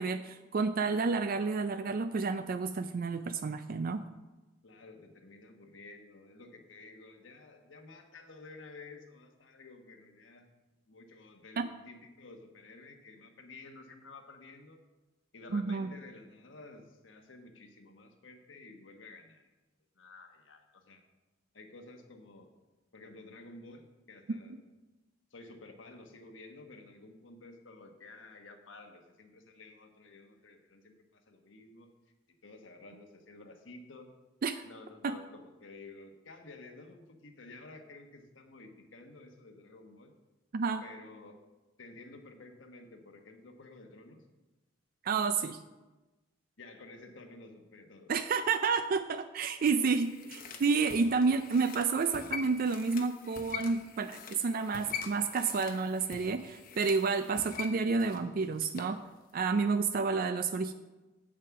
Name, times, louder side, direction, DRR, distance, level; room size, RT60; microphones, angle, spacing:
voice 1, 0.0-4.0 11.6-11.7 15.5-15.9 34.4-34.6 35.0-35.2 40.5-40.8 45.0-45.6 48.1-59.0 59.3-60.7, right 4 dB, 50° right, 10 dB, 0.4 m, -30 dB
voice 2, 4.6-10.5 10.9-14.8 15.3-19.5 19.9-21.0 21.5-22.5 22.9-24.5 25.3-31.9 32.4-34.1 34.6-40.1 40.8-41.4 41.8-44.2 46.6-48.1, left 3 dB, 80° left, 5 dB, 1.3 m, -52 dB
sound 1, 49.6-59.0 59.3-59.4, left 6 dB, 50° left, 0.9 m, -44 dB
7.9 x 7.5 x 5.9 m, 1.1 s
head